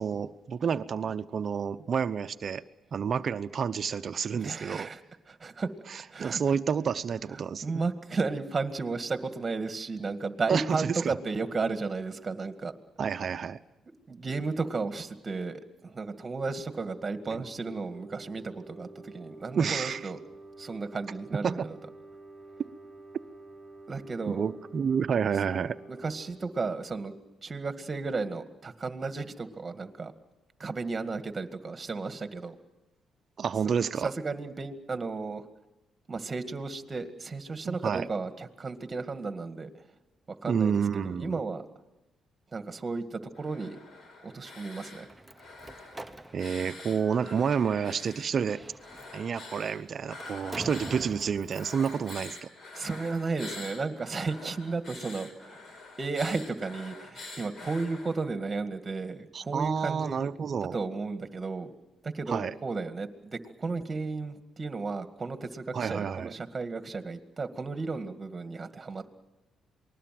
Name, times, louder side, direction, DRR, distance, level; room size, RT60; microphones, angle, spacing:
voice 1, 0.0-2.6 2.9-4.9 6.2-7.7 10.5-11.1 13.0-13.6 19.5-20.0 21.4-21.7 24.3-25.8 33.4-34.1 37.6-38.1 40.5-41.4 46.3-48.6 49.1-52.5 59.3-60.8 62.3-62.5 65.7-66.3, right 7 dB, 50° right, 11 dB, 0.8 m, -29 dB
voice 2, 4.3-5.0 5.3-5.7 6.1-6.6 7.3-12.7 14.1-20.2 20.6-21.8 23.9-24.4 25.9-27.2 27.4-30.1 30.6-32.6 34.0-35.5 36.1-39.7 40.3-40.7 41.0-41.7 42.5-43.8 44.2-45.1 52.7-60.3 60.7-61.7 62.0-69.1, right 4 dB, 30° right, 8 dB, 2.0 m, -34 dB
sound 1, 16.4-27.8, right 2 dB, 10° left, 5.9 m, -50 dB
sound 2, 43.3-45.1 45.3-48.3 48.8-51.1 51.5-58.3, left 2 dB, 55° left, 4.2 m, -46 dB
Slam, 44.9-52.4, right 1 dB, 10° right, 1.0 m, -46 dB
27.5 x 20.5 x 7.7 m, 0.99 s
cardioid pair, 90°, 0 cm